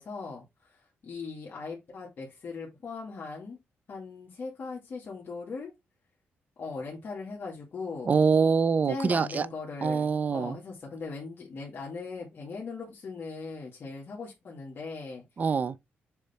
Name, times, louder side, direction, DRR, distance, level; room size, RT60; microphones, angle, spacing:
voice 1, 0.0-3.6 3.9-5.7 6.6-8.1 8.9-15.2, left 4 dB, 50° left, 2.1 m, -39 dB
voice 2, 8.1-9.5 9.8-10.6 15.4-15.8, right 5 dB, 40° right, 0.6 m, -24 dB
7.0 x 3.4 x 4.2 m
cardioid pair, 105°, 4 cm